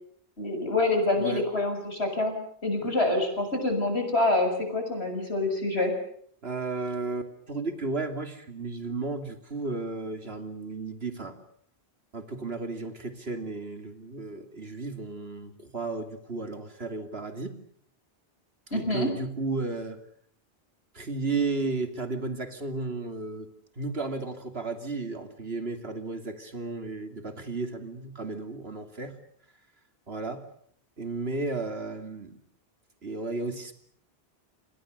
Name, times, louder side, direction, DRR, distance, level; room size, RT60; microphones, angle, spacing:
voice 1, 0.4-2.3 2.6-5.9 18.7-19.1, left 2 dB, 80° left, 5 dB, 7.2 m, -26 dB
voice 2, 6.4-11.4 12.1-17.5 18.7-20.0 20.9-23.5 23.8-29.2 30.1-30.4 31.0-32.4 33.0-33.7, right 3 dB, 70° right, 7 dB, 3.2 m, -33 dB
29.5 x 26.5 x 6.8 m, 0.64 s
omnidirectional pair, 1.1 m